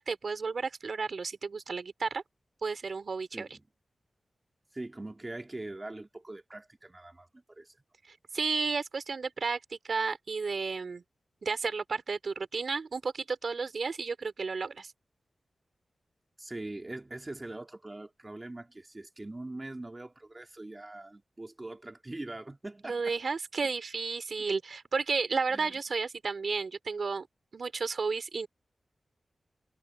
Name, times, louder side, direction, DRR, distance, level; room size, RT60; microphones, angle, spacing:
voice 1, 0.0-2.2 2.6-3.5 8.1-11.0 11.4-14.9 22.8-27.3 27.5-28.5, right 4 dB, 70° right, 3.7 m, -32 dB
voice 2, 3.3-3.6 4.7-7.8 16.4-23.2 25.5-25.7, right 2 dB, 25° right, 2.6 m, -42 dB
cardioid pair, 65°, 0 cm